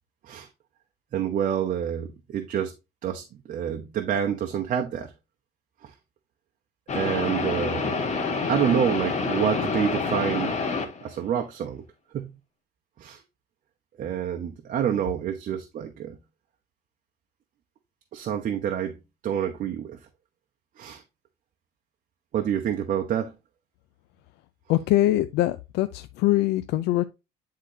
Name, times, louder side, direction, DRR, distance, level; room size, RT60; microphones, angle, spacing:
voice 1, 1.1-2.7 3.0-5.1 5.8-5.9 6.9-7.9 8.5-10.6 11.0-11.8 12.1-12.3 13.0-13.2 14.0-16.2 18.1-19.0 19.2-20.0 20.8-21.0 22.3-23.3, right 9 dB, 55° right, 0.9 m, -27 dB
sound 1, 6.9-11.1, left 4 dB, 45° left, 1.6 m, -27 dB
voice 2, 24.7-27.0, left 15 dB, 85° left, 0.5 m, -23 dB
9.9 x 3.8 x 2.8 m
cardioid pair, 110°, 17 cm